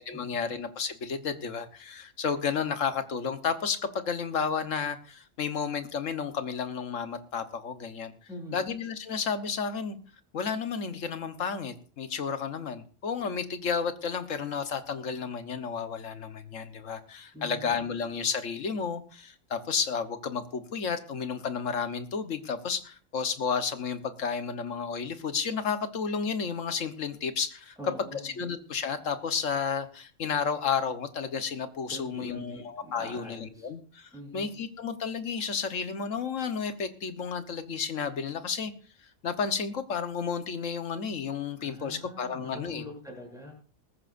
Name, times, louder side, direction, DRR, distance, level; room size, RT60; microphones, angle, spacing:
voice 1, 0.0-8.1 8.5-10.0 10.3-27.8 28.1-38.7 39.2-42.8, left 6 dB, 70° left, 10 dB, 1.5 m, -32 dB
voice 2, 8.3-8.6 17.3-17.7 27.8-28.3 31.9-33.7 34.1-34.5 41.6-43.5, left 1 dB, ahead, -1 dB, 8.0 m, -43 dB
19.5 x 14.5 x 2.6 m, 0.39 s
omnidirectional pair, 1.4 m